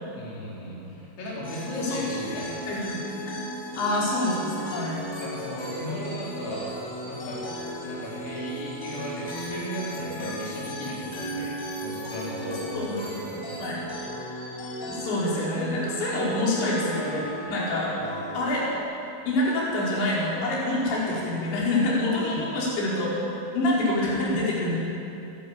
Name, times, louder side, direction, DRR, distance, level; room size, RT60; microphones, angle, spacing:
voice 1, 0.1-2.6 5.2-6.8 7.0-7.5 7.8-13.9 18.0-18.2 22.3-22.4, equal, 85° left, -6 dB, 6.7 m, -36 dB
sound 1, 1.4-18.8, equal, 30° left, 2.3 m, -36 dB
voice 2, 2.7-3.4 3.8-5.0 12.7-13.0 13.6-13.8 14.9-17.9 18.3-18.6 19.3-24.8, left 1 dB, 60° left, -6 dB, 7.0 m, -26 dB
28.0 x 12.0 x 8.8 m, 2.7 s
omnidirectional pair, 5.9 m